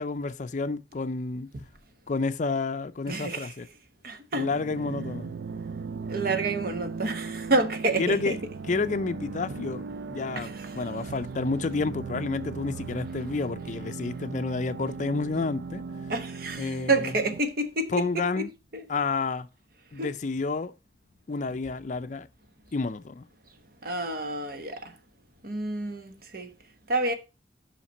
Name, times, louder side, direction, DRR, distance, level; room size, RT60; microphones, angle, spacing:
voice 1, 0.0-1.5 2.1-3.7 4.3-5.4 8.0-8.4 8.7-15.8 16.6-17.1 17.9-18.5 18.9-19.5 19.9-20.7 21.3-22.3 22.7-23.2, left 4 dB, 45° left, 0.5 m, -30 dB
voice 2, 3.1-3.5 4.0-4.5 6.0-8.3 10.4-11.1 16.1-18.5 18.7-18.8 20.0-20.1 23.8-24.9 25.4-26.5 26.9-27.1, right 2 dB, 55° right, 1.1 m, -29 dB
sound 1, 4.3-17.4, right 4 dB, 80° right, 0.4 m, -38 dB
5.8 x 5.7 x 5.3 m
head